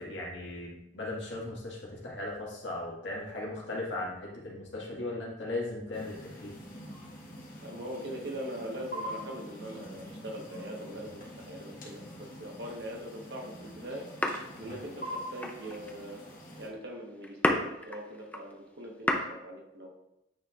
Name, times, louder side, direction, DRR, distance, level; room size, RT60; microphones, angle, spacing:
voice 1, 0.0-6.5 14.6-14.7, left 2 dB, 70° left, -4 dB, 1.9 m, -37 dB
sound 1, 5.9-16.7, equal, 50° left, 1.4 m, -45 dB
voice 2, 7.6-14.1 14.6-16.2 16.6-19.9, equal, 65° right, -1 dB, 1.3 m, -41 dB
sound 2, 14.0-18.5 18.8-19.2, left 1 dB, 10° left, 0.5 m, -32 dB
8.9 x 4.4 x 2.5 m, 0.85 s
head